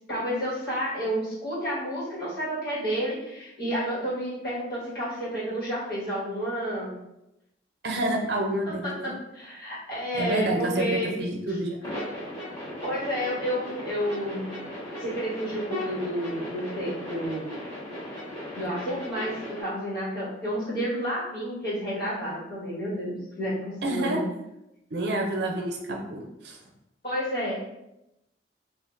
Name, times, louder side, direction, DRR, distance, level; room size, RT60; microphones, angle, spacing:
voice 1, 0.0-6.9 8.7-11.1 11.5-11.6 12.8-14.5 15.0-17.5 18.5-24.2 27.0-27.6, equal, 55° left, -9 dB, 1.5 m, -30 dB
voice 2, 7.8-9.1 10.2-11.8 23.8-24.2 24.9-26.6, right 1 dB, 65° right, 1 dB, 0.5 m, -28 dB
sound 1, 11.8-19.6, left 1 dB, 25° left, 1.1 m, -37 dB
3.4 x 2.5 x 2.5 m, 0.88 s
head